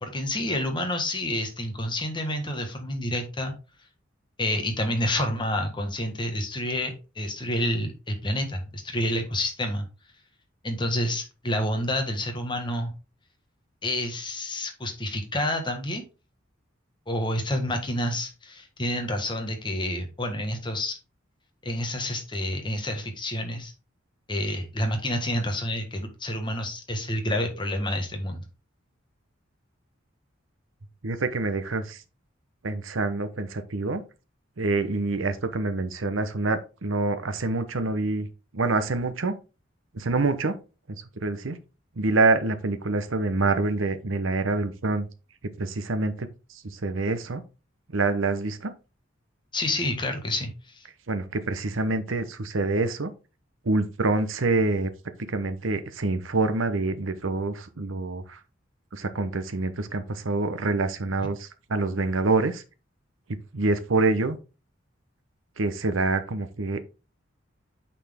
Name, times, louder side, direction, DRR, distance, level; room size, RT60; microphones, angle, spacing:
voice 1, 0.0-3.5 4.4-9.9 10.6-12.9 13.8-16.0 17.1-21.0 21.6-23.7 24.3-28.4 49.5-50.8, left 1 dB, 25° left, 1.4 m, -29 dB
voice 2, 31.0-32.0 32.6-34.0 34.6-38.3 38.5-39.4 39.9-40.6 40.9-41.6 42.0-45.1 45.6-46.3 46.6-47.4 47.9-48.7 51.1-53.1 53.6-54.9 55.3-58.4 58.9-62.6 63.5-64.4 65.6-66.8, right 3 dB, 80° right, 0.9 m, -26 dB
8.4 x 4.2 x 3.6 m
head